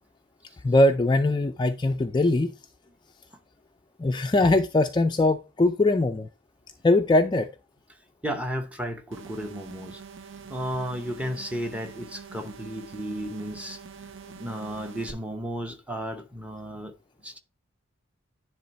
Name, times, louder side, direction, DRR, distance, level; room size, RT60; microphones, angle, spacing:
voice 1, 0.6-2.5 4.0-6.3 6.8-7.5, left 2 dB, 20° left, 0.3 m, -21 dB
voice 2, 8.2-10.0 10.5-14.1 14.3-16.9 17.2-17.4, equal, 5° right, 0.8 m, -34 dB
sound 1, 9.1-15.1, right 6 dB, 60° right, 0.6 m, -45 dB
10.0 x 3.4 x 4.1 m
head